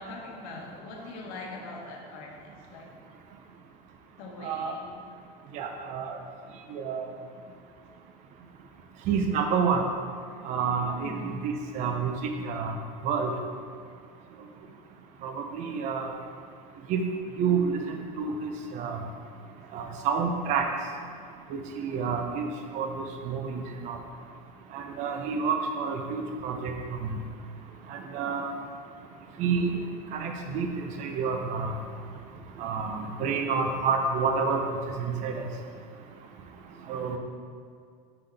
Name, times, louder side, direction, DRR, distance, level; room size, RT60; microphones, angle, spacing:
voice 1, 0.0-2.9 4.2-5.0 11.0-11.4, left 2 dB, 65° left, 0 dB, 1.2 m, -42 dB
voice 2, 4.4-4.7 5.5-6.2 6.7-7.1 9.1-9.8 10.4-11.1 11.4-12.2 12.4-12.7 13.0-13.3 15.2-16.2 16.9-17.0 17.4-19.0 19.7-20.7 21.5-22.5 22.7-24.0 24.7-26.7 27.9-28.5 29.4-29.8 30.1-31.7 32.6-34.6 35.0-35.4 36.9-37.2, right 5 dB, 40° right, 4 dB, 0.6 m, -29 dB
5.7 x 5.6 x 3.4 m, 2.3 s
supercardioid pair, 155°, 20 cm